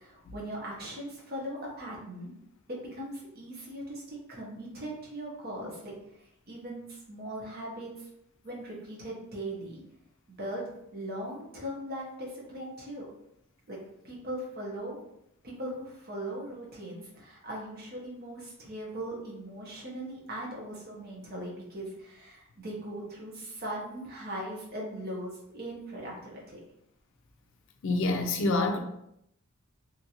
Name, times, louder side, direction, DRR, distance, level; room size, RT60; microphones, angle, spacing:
voice 1, 0.0-2.3 2.7-5.9 6.5-8.1 8.4-9.8 10.4-10.6 10.9-13.1 13.7-13.8 14.0-15.0 15.4-26.6, right 1 dB, 45° right, 0.9 m, -39 dB
voice 2, 27.8-28.8, left 2 dB, 60° left, 0.4 m, -27 dB
2.8 x 2.5 x 2.8 m
head